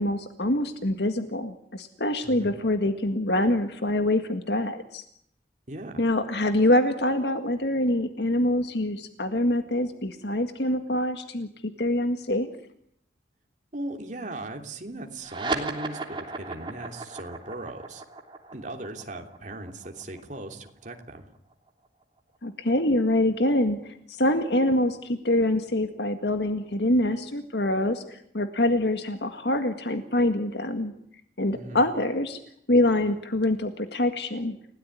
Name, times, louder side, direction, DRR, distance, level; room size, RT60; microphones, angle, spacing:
voice 1, 0.0-5.0 6.0-11.5 11.8-12.5 22.4-30.9 31.4-32.4 32.7-34.6, left 1 dB, 70° left, 8 dB, 1.9 m, -25 dB
voice 2, 2.2-2.6 5.7-6.0 13.7-18.0 18.5-21.3 31.5-31.8, right 2 dB, 45° right, 3 dB, 3.2 m, -38 dB
sound 1, 15.2-22.0, right 3 dB, 30° right, 3.3 m, -36 dB
29.5 x 17.5 x 9.9 m, 0.73 s
head